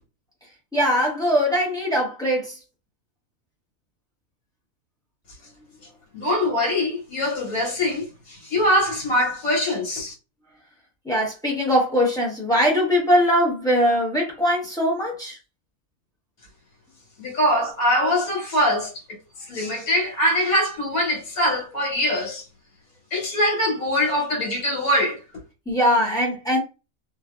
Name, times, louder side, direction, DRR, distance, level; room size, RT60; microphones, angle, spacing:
voice 1, 0.7-2.6 11.0-15.4 25.7-26.6, equal, 5° left, 0.6 m, -21 dB
voice 2, 6.1-10.1 17.2-22.4 23.1-25.2, left 1 dB, 75° left, 1.4 m, -23 dB
2.6 x 2.3 x 2.3 m
omnidirectional pair, 1.5 m